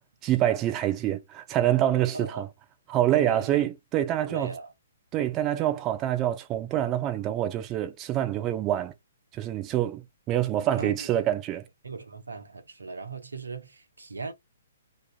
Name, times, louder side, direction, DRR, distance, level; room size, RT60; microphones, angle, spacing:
voice 1, 0.2-2.5 2.9-4.5 5.1-8.9 9.3-11.6, right 12 dB, 25° right, 0.5 m, -26 dB
voice 2, 2.1-2.4 3.3-3.6 4.2-4.7 10.8-11.2 11.8-14.3, right 4 dB, 70° right, 0.7 m, -38 dB
2.9 x 2.4 x 2.3 m
figure-of-eight pair, 125°, 0 cm